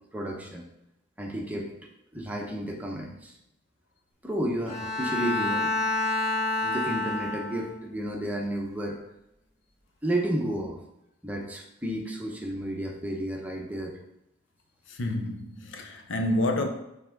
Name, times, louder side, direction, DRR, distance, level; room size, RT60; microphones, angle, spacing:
voice 1, 0.1-0.6 1.2-1.7 2.1-3.3 4.2-5.7 6.6-9.0 10.0-10.8 11.2-14.0, right 1 dB, 10° right, 0.8 m, -32 dB
Bowed string instrument, 4.7-7.9, left 2 dB, 35° left, 1.6 m, -28 dB
voice 2, 14.9-16.7, left 1 dB, 80° left, 0.7 m, -28 dB
5.8 x 3.5 x 4.5 m
head